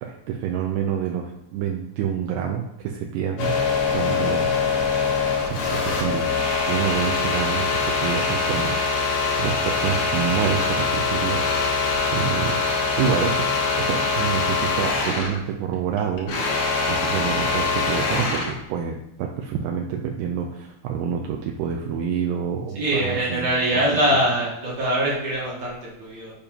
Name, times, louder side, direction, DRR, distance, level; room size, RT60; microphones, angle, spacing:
voice 1, 0.0-3.6 3.9-4.5 5.5-6.3 6.7-12.6 13.0-13.5 13.8-16.3 16.9-23.8, right 8 dB, 85° right, 2 dB, 2.0 m, -28 dB
sound 1, 3.4-15.4 15.7-18.6, left 4 dB, 65° left, 1.5 m, -23 dB
voice 2, 22.8-26.3, right 1 dB, 60° right, -5 dB, 2.2 m, -23 dB
7.0 x 5.2 x 2.8 m, 0.87 s
omnidirectional pair, 4.5 m